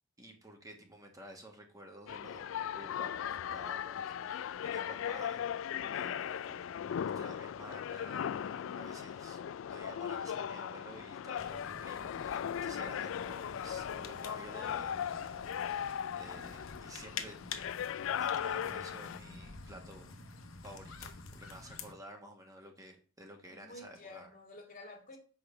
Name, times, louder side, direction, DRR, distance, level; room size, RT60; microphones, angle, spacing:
voice 1, 0.2-17.4 18.1-20.1 20.6-24.3, right 1 dB, 15° right, 1.2 m, -52 dB
sound 1, 2.1-19.2, left 9 dB, 70° left, 0.3 m, -38 dB
sound 2, 11.4-21.9, left 5 dB, 85° left, 1.0 m, -48 dB
voice 2, 23.4-25.2, left 2 dB, 45° left, 2.1 m, -51 dB
5.8 x 5.1 x 6.7 m
head